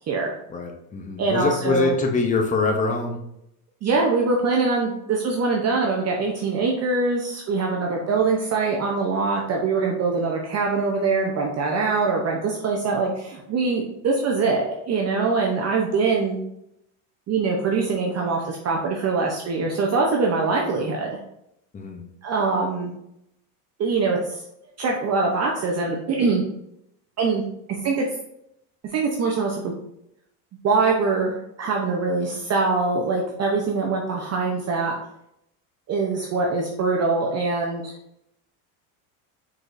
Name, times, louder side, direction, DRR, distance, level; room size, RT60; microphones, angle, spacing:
voice 1, 0.5-3.2 21.7-22.1, left 3 dB, 15° left, 3 dB, 0.6 m, -24 dB
voice 2, 1.2-1.9 3.8-16.4 17.3-21.1 22.2-22.9 23.8-24.4 24.8-26.4 27.2-27.4 27.8-28.0 28.9-29.7 30.6-35.0 35.9-37.9, right 4 dB, 35° right, 0 dB, 0.6 m, -23 dB
5.0 x 4.1 x 2.5 m, 0.79 s
cardioid pair, 135°, 48 cm